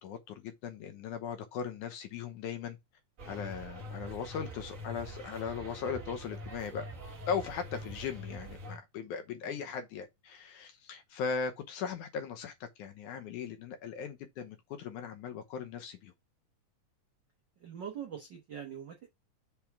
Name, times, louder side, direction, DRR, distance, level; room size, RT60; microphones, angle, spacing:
voice 1, 0.0-2.8 3.3-6.9 7.3-16.1, left 6 dB, 75° left, 2.3 m, -38 dB
sound 1, 3.2-8.8, equal, 50° right, 0.9 m, -44 dB
voice 2, 17.6-19.1, right 8 dB, 80° right, 1.0 m, -43 dB
5.9 x 3.5 x 5.9 m
omnidirectional pair, 3.7 m